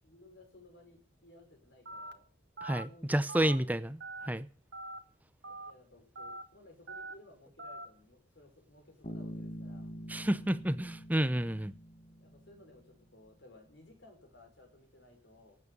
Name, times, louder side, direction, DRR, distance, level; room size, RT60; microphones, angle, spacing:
voice 1, 0.0-2.3 2.8-3.9 5.5-9.9 12.2-15.6, left 2 dB, 65° left, 5.4 m, -58 dB
Telephone, 1.9-2.1 2.6-2.8 3.3-3.6 4.0-4.3 4.7-5.0 5.4-5.7 6.2-6.4 6.9-7.1 7.6-7.9, right 2 dB, 60° right, 1.5 m, -43 dB
voice 2, 2.6-4.0 4.3-4.5 10.1-11.7, right 1 dB, 10° right, 0.6 m, -30 dB
Bass guitar, 9.0-12.8, equal, 35° left, 1.7 m, -45 dB
17.5 x 8.6 x 6.7 m
head